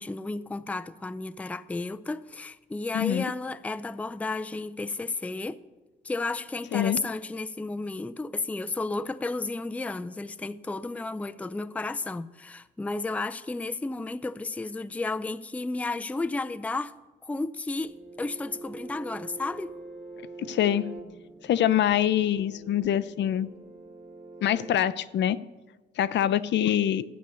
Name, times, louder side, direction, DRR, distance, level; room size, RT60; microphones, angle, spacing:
voice 1, 0.0-5.6 6.0-16.9 17.2-17.9 18.2-19.8, left 3 dB, 5° left, 0.4 m, -33 dB
voice 2, 2.9-3.3 6.7-7.0 20.4-20.8 21.4-23.5 24.4-25.4 26.0-27.0, left 11 dB, 65° left, 0.5 m, -24 dB
sound 1, 17.8-24.7, right 3 dB, 35° right, 2.2 m, -44 dB
12.5 x 8.2 x 6.8 m
cardioid pair, 90°, 20 cm